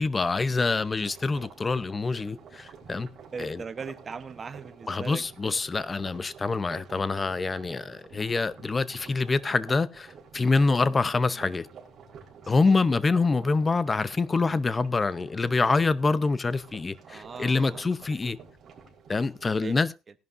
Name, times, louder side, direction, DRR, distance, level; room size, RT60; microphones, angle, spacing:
voice 1, 0.0-3.1 3.4-3.6 4.9-11.7 12.5-18.4 19.1-19.9, left 3 dB, 20° left, 0.7 m, -26 dB
sound 1, 0.8-19.5, right 6 dB, 45° right, 4.3 m, -49 dB
voice 2, 3.3-5.6 12.7-12.8 17.1-17.8 19.6-19.8, right 5 dB, 30° right, 1.0 m, -39 dB
18.0 x 11.0 x 2.6 m
cardioid pair, 125°, 0 cm